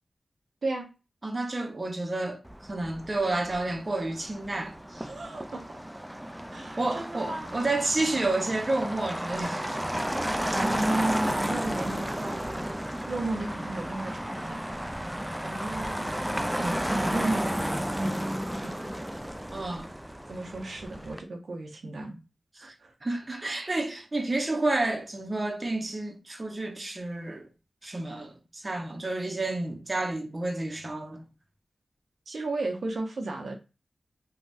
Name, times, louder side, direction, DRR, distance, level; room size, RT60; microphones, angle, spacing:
voice 1, 1.2-5.1 6.8-10.1 10.3-10.4 15.4-16.1 16.5-16.8 19.5-19.9 22.6-22.7 23.0-27.5 27.8-31.2, right 2 dB, 40° right, 0.7 m, -31 dB
Motor vehicle (road), 2.4-21.2, equal, 10° right, 0.4 m, -33 dB
voice 2, 5.0-5.8 6.5-7.5 10.5-12.7 13.1-14.7 16.9-18.9 20.3-22.2 22.6-22.9 32.3-33.6, right 2 dB, 80° right, 0.7 m, -34 dB
3.4 x 2.2 x 2.5 m
cardioid pair, 55°, 0 cm